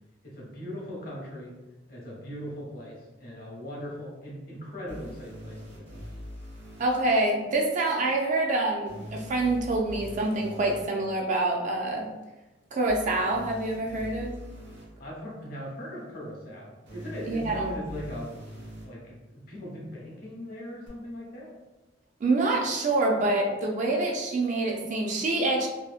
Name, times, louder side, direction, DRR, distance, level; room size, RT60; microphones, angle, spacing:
voice 1, 0.2-1.5 1.9-5.9 15.0-18.4 18.8-21.5, equal, 55° left, -3 dB, 0.8 m, -39 dB
sound 1, 4.9-6.8 8.9-10.9 12.9-14.8 16.9-18.9 20.9-21.0, equal, 70° right, 0.9 m, -42 dB
voice 2, 6.8-12.1 12.7-14.3 17.3-17.6 22.2-25.7, right 2 dB, 45° right, 1 dB, 0.4 m, -26 dB
2.8 x 2.0 x 2.4 m, 1.1 s
head